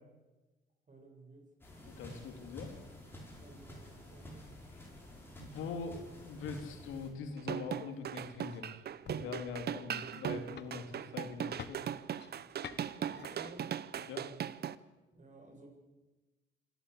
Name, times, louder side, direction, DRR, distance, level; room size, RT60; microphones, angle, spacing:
voice 1, 0.9-1.5 3.4-4.5 12.9-13.8 15.1-15.7, right 2 dB, 40° right, 2 dB, 7.0 m, -55 dB
sound 1, 1.6-7.1, left 1 dB, 10° left, 5.9 m, -51 dB
voice 2, 1.9-2.7 5.4-11.8 14.0-14.3, left 5 dB, 90° left, 6 dB, 2.8 m, -43 dB
sound 2, 6.4-14.4, left 8 dB, 60° left, 1.3 m, -54 dB
sound 3, 7.4-14.8, right 9 dB, 55° right, 0.8 m, -39 dB
26.0 x 12.0 x 8.4 m, 1.2 s
cardioid pair, 90°, 20 cm